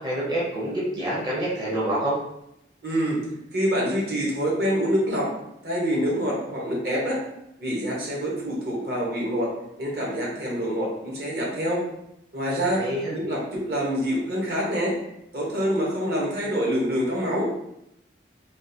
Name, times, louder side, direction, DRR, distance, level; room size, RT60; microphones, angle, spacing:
voice 1, 0.0-2.1 12.8-13.1, right 1 dB, 25° right, -7 dB, 0.6 m, -27 dB
voice 2, 2.8-3.2 3.5-5.3 5.6-7.2 7.6-9.5 9.8-11.8 12.3-12.8 13.1-14.9 15.3-17.5, equal, 60° right, -4 dB, 0.9 m, -26 dB
3.6 x 2.2 x 2.7 m, 0.82 s
head